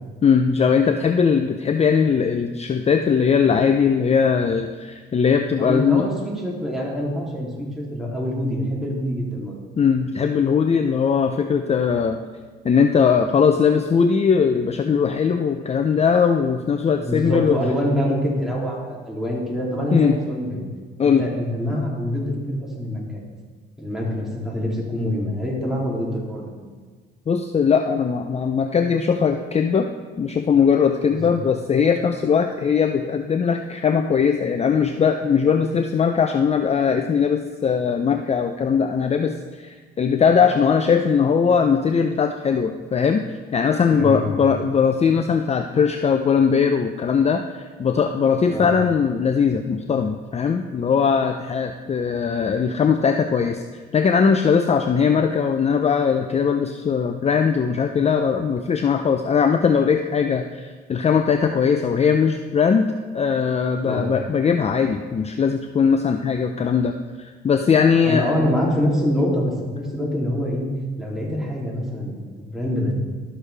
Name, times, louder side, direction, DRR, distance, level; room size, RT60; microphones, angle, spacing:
voice 1, 0.2-6.1 9.8-12.2 12.6-17.6 19.9-20.2 21.0-21.3 27.3-29.9 30.2-43.2 43.5-66.9 67.2-68.3, left 6 dB, 35° left, 6 dB, 0.5 m, -20 dB
voice 2, 5.6-9.6 17.0-20.7 21.0-23.2 23.8-26.5 31.1-31.4 43.9-44.4 48.5-48.7 63.8-64.0 68.0-70.7 71.0-72.9, equal, ahead, -4 dB, 2.8 m, -25 dB
12.5 x 6.7 x 3.3 m, 1.5 s
cardioid pair, 90°, 20 cm